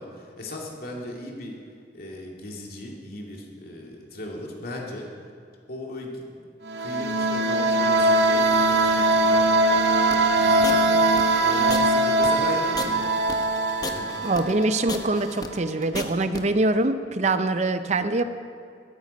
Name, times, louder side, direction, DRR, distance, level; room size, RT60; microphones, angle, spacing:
voice 1, 0.0-1.6 1.9-5.1 5.7-6.4 6.8-9.5 10.1-11.1 11.4-13.2 13.8-14.1, left 1 dB, 55° left, -1 dB, 2.4 m, -37 dB
sound 1, 6.7-15.3, right 2 dB, 70° right, 0.8 m, -21 dB
sound 2, 10.1-16.4, left 3 dB, 20° left, 0.8 m, -34 dB
voice 2, 14.2-18.2, right 2 dB, 40° right, 11 dB, 0.6 m, -24 dB
13.5 x 13.5 x 5.3 m, 2.2 s
head